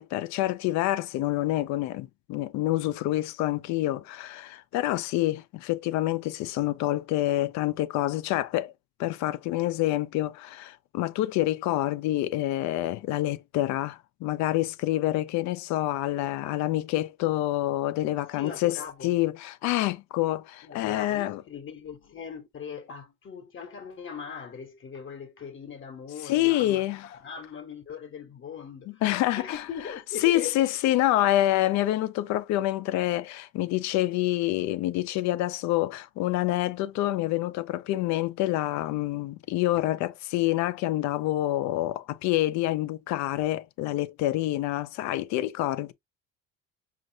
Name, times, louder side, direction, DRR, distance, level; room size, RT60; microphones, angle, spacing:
voice 1, 0.0-8.7 9.0-18.8 19.0-21.4 26.2-27.1 29.0-29.6 30.2-45.9, left 15 dB, 65° left, 0.5 m, -27 dB
voice 2, 18.2-19.1 20.6-26.8 27.1-29.0 29.4-30.8, left 7 dB, 40° left, 0.9 m, -40 dB
5.2 x 2.6 x 2.6 m
supercardioid pair, 85°, 30 cm